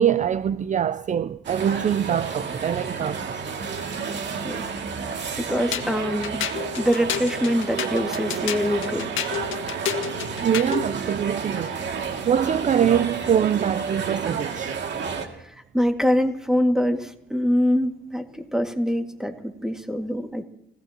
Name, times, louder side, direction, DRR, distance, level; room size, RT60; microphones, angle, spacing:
voice 1, 0.0-3.4 10.4-11.8 12.2-14.8, right 8 dB, 40° right, 0.5 m, -23 dB
sound 1, 1.4-15.3, right 5 dB, 65° right, 2.4 m, -31 dB
voice 2, 5.1-6.4 6.8-9.1 15.7-20.4, equal, 5° right, 2.0 m, -24 dB
sound 2, 5.7-10.9, left 10 dB, 80° left, 1.7 m, -30 dB
28.5 x 17.0 x 2.9 m
cardioid pair, 90°, 20 cm